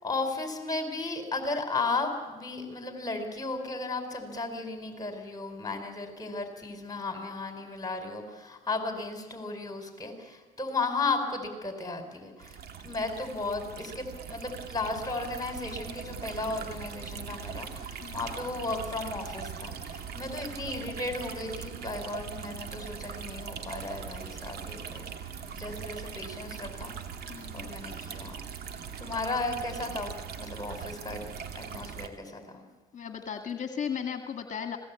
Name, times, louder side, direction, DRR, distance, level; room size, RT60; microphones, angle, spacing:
voice 1, 0.0-25.0 25.6-28.4 29.0-31.2 31.5-32.7, left 3 dB, 20° left, 5 dB, 4.6 m, -35 dB
sound 1, 12.4-32.1, right 7 dB, 55° right, 2.5 m, -41 dB
voice 2, 27.3-27.7 32.9-34.8, left 7 dB, 40° left, 6 dB, 2.0 m, -35 dB
25.5 x 18.5 x 8.4 m, 1.3 s
hypercardioid pair, 70°, 19 cm